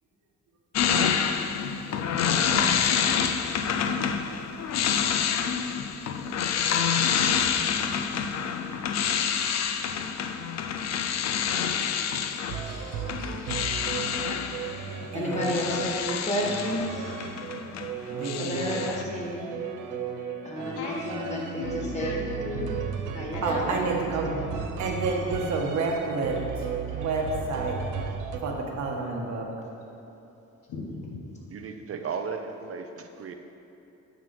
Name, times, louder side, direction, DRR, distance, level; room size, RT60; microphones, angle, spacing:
sound 1, 0.8-17.9 18.2-19.0, left 7 dB, 60° left, 0.6 m, -27 dB
voice 1, 2.3-3.1 15.1-15.5 18.1-18.7 23.4-24.3 24.8-26.4 26.9-27.7 28.4-29.5, right 3 dB, 70° right, 0 dB, 1.4 m, -30 dB
sound 2, 12.5-28.4, right 7 dB, 85° right, 0.8 m, -35 dB
voice 2, 15.1-16.9 18.4-19.5 20.4-22.2 23.1-23.8, left 1 dB, 25° left, -3 dB, 2.0 m, -31 dB
voice 3, 20.7-22.7 23.3-24.0 30.7-31.2, left 3 dB, 90° left, 0 dB, 1.3 m, -37 dB
voice 4, 31.5-33.3, right 5 dB, 50° right, 6 dB, 0.6 m, -35 dB
9.4 x 6.1 x 4.7 m, 2.9 s
cardioid pair, 90°, 30 cm